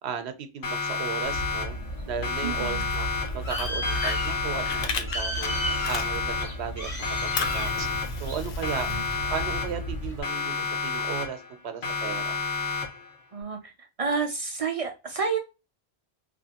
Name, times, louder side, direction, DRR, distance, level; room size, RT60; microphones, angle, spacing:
voice 1, 0.0-1.8 2.1-3.1 3.3-5.6 5.9-6.9 7.2-7.9 8.2-8.9 9.3-12.4, right 7 dB, 90° right, 9 dB, 0.9 m, -35 dB
Siren, 0.6-1.9 2.2-3.5 3.8-5.1 5.4-6.7 7.0-8.3 8.6-9.9 10.2-11.5 11.8-13.1, left 4 dB, 80° left, 1.3 m, -31 dB
Bird, 1.2-10.2, equal, 35° left, 0.9 m, -33 dB
voice 2, 2.4-2.9 8.9-9.1 13.3-13.7 14.0-15.4, right 5 dB, 55° right, 4 dB, 0.4 m, -30 dB
Fire, 2.8-6.5 6.9-9.7, left 5 dB, 55° left, 0.5 m, -36 dB
3.0 x 2.5 x 2.8 m, 0.28 s
omnidirectional pair, 1.1 m